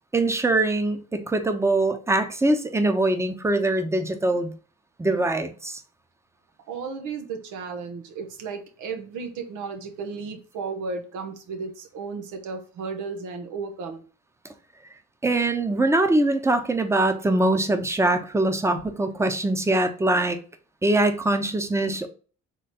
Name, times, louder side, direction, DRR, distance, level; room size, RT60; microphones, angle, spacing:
voice 1, 0.1-4.5 5.0-5.8 15.2-20.4 20.8-22.1, right 2 dB, 10° right, 0.7 m, -23 dB
voice 2, 6.7-14.0, right 5 dB, 90° right, 1.0 m, -34 dB
4.0 x 3.3 x 4.0 m
cardioid pair, 90°, 30 cm